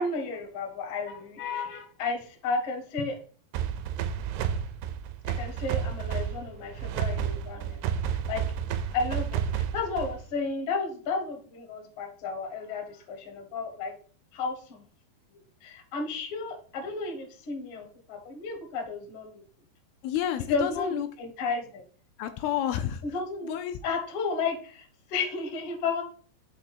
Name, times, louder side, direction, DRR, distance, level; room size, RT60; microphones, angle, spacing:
voice 1, 0.0-3.2 5.2-7.8 8.3-8.4 8.9-13.9 14.3-14.8 15.6-19.4 20.5-21.8 23.1-23.6 23.8-26.0, left 4 dB, 65° left, 3 dB, 1.4 m, -33 dB
sound 1, 3.5-10.3, right 8 dB, 85° right, 2.6 m, -31 dB
voice 2, 20.0-21.1 22.2-23.0 23.4-23.8, left 10 dB, 80° left, 7 dB, 2.3 m, -30 dB
6.5 x 3.3 x 5.9 m, 0.43 s
omnidirectional pair, 4.5 m